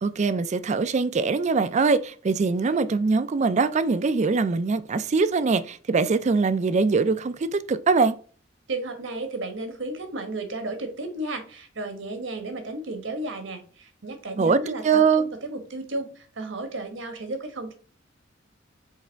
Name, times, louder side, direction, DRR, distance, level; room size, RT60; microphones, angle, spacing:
voice 1, 0.0-8.2 14.4-15.3, right 4 dB, 35° right, 0.4 m, -22 dB
voice 2, 8.7-15.0 15.4-17.7, right 2 dB, 75° right, 1.2 m, -33 dB
7.3 x 3.3 x 4.5 m
head